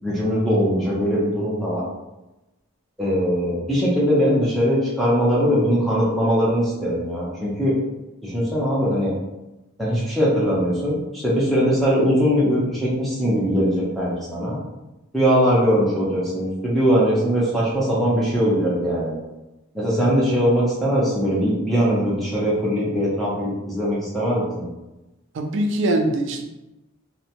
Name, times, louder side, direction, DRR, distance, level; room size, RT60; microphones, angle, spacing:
voice 1, 0.0-1.8 3.0-7.7 8.2-9.1 9.8-14.6 15.1-19.2 19.7-24.6, equal, ahead, -7 dB, 0.5 m, -21 dB
voice 2, 25.3-26.4, right 1 dB, 55° right, 4 dB, 0.3 m, -22 dB
2.6 x 2.1 x 2.8 m, 1.0 s
head